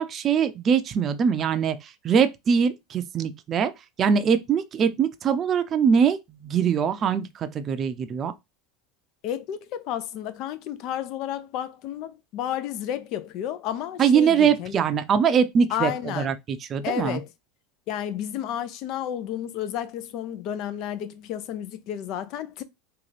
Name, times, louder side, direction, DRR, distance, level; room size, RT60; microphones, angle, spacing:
voice 1, 0.0-3.7 4.0-8.3 14.0-17.2, right 7 dB, 35° right, 0.6 m, -22 dB
voice 2, 9.2-14.8 15.7-16.3 16.8-17.3 17.9-22.6, left 10 dB, 55° left, 0.6 m, -31 dB
3.8 x 2.6 x 3.3 m
hypercardioid pair, 100°, 0 cm